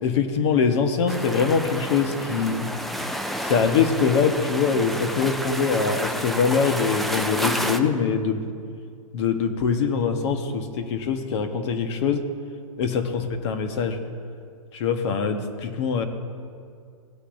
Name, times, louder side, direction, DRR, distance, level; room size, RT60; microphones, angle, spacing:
voice 1, 0.0-2.7 3.4-8.4 9.1-12.2 12.8-14.0 14.7-16.0, left 5 dB, 50° left, 7 dB, 1.2 m, -23 dB
sound 1, 1.1-7.8, equal, ahead, 0.4 m, -30 dB
17.0 x 8.3 x 2.6 m, 2.3 s
hypercardioid pair, 135°, 18 cm